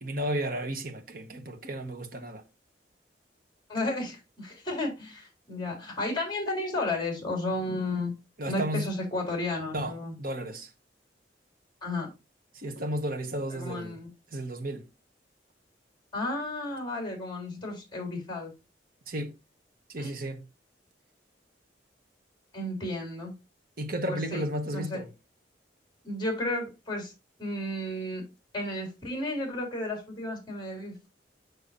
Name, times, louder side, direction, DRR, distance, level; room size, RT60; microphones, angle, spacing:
voice 1, 0.0-2.4 8.4-8.9 9.7-10.7 12.5-14.0 14.3-14.9 19.1-19.3 19.9-20.5 23.8-25.1, right 1 dB, 50° right, 1.1 m, -33 dB
voice 2, 3.7-8.1 8.4-10.1 11.8-12.1 13.5-14.1 16.1-18.5 20.0-20.1 22.5-23.3 24.1-24.4 24.7-25.0 26.0-27.1 27.4-28.2 28.5-31.1, left 2 dB, 25° left, 3.4 m, -33 dB
6.8 x 6.2 x 2.6 m
head